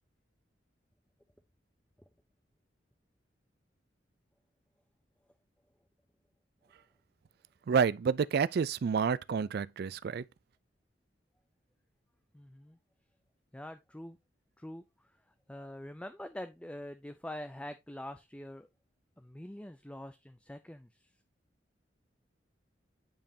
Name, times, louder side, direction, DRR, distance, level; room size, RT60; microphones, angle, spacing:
voice 1, 7.7-10.2, right 6 dB, 60° right, 0.3 m, -29 dB
voice 2, 12.3-12.8 13.5-14.2 14.6-15.1 15.5-18.7 19.2-21.1, left 1 dB, 5° left, 0.4 m, -45 dB
8.9 x 5.3 x 2.7 m
head